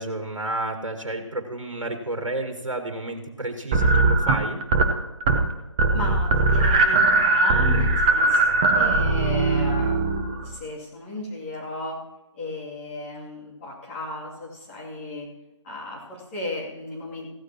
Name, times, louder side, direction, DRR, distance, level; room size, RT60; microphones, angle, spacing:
voice 1, 0.0-4.6, right 2 dB, 75° right, 5 dB, 1.7 m, -31 dB
sound 1, 3.7-4.9 5.2-5.5 5.8-10.5, right 3 dB, 15° right, 0.5 m, -20 dB
voice 2, 5.9-12.0 12.3-15.3 15.6-17.3, left 2 dB, 25° left, -5 dB, 2.6 m, -35 dB
16.0 x 13.0 x 2.9 m, 0.97 s
figure-of-eight pair, 150°, 16 cm